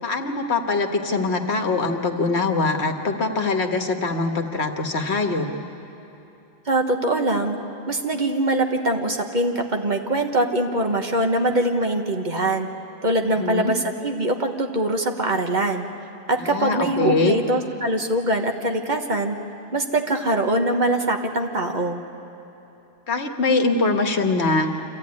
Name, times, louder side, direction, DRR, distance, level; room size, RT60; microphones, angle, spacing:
voice 1, 0.0-5.5 13.4-13.7 16.4-17.4 23.1-24.7, left 3 dB, 90° left, 4 dB, 1.7 m, -23 dB
voice 2, 6.6-7.6 7.9-12.7 13.0-15.9 16.3-19.4 19.7-22.0, right 1 dB, 45° right, 4 dB, 1.5 m, -23 dB
26.0 x 15.0 x 9.7 m, 3.0 s
omnidirectional pair, 1.1 m